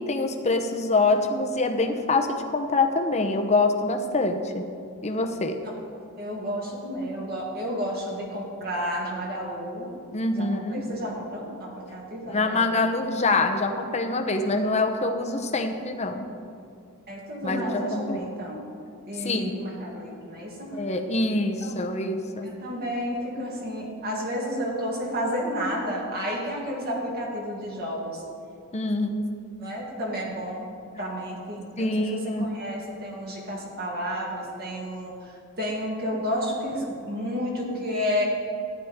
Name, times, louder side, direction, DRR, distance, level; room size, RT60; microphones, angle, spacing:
voice 1, 0.0-4.7 5.0-5.6 10.1-10.9 12.3-16.3 17.4-18.2 19.1-19.5 20.7-22.5 28.7-29.3 31.8-32.5, left 2 dB, 30° left, 5 dB, 0.8 m, -25 dB
voice 2, 6.2-9.9 10.3-12.7 17.1-18.6 19.1-20.8 22.4-28.2 29.6-30.7 31.0-35.3 35.6-38.2, equal, 45° right, -3 dB, 2.4 m, -31 dB
14.0 x 10.5 x 3.6 m, 2.6 s
head